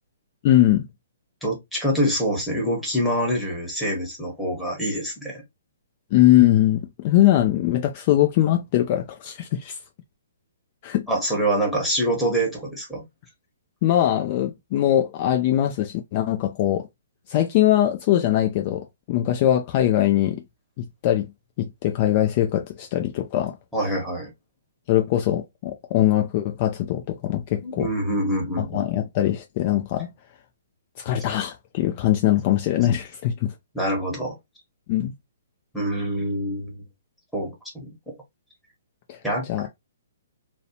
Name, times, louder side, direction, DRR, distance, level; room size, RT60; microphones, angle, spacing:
voice 1, 0.4-0.9 6.1-9.8 10.8-11.1 13.8-16.9 17.3-20.4 20.8-21.3 21.6-23.5 24.9-27.9 28.6-30.1 31.0-33.5 34.9-35.1 39.1-39.2 39.5-39.7, left 13 dB, 40° left, 0.4 m, -21 dB
voice 2, 1.4-5.4 11.1-13.1 23.7-24.3 27.5-28.9 33.7-34.4 35.7-36.8 37.3-38.0 39.2-39.5, equal, 5° left, 1.1 m, -25 dB
2.6 x 2.0 x 2.8 m
hypercardioid pair, 140°, 0 cm